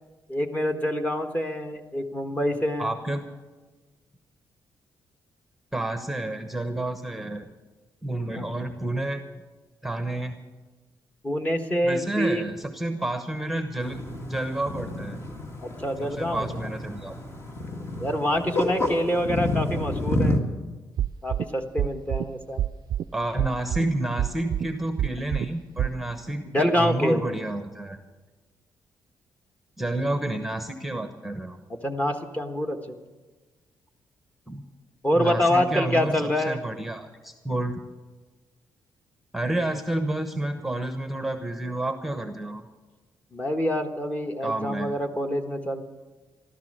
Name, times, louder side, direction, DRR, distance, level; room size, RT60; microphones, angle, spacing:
voice 1, 0.3-3.0 8.3-8.6 11.2-12.4 15.6-16.7 18.0-20.4 21.2-22.6 26.4-27.2 31.8-33.0 35.0-36.6 43.3-45.8, equal, 20° left, 5 dB, 1.4 m, -26 dB
voice 2, 2.8-3.2 5.7-7.5 8.0-9.2 9.8-10.3 11.8-15.2 16.0-17.2 23.1-28.0 29.8-31.6 34.5-34.6 35.1-37.8 39.3-42.6 44.4-45.0, right 1 dB, ahead, 7 dB, 1.0 m, -30 dB
sound 1, 13.8-20.4, left 1 dB, 35° left, 1.9 m, -30 dB
sound 2, 21.0-21.4 21.8-22.2 22.6-23.0 23.4-23.8 24.2-24.6 25.0-25.5 25.8-25.9, right 11 dB, 65° right, 0.4 m, -25 dB
14.5 x 13.0 x 6.6 m, 1.3 s
cardioid pair, 115°, 7 cm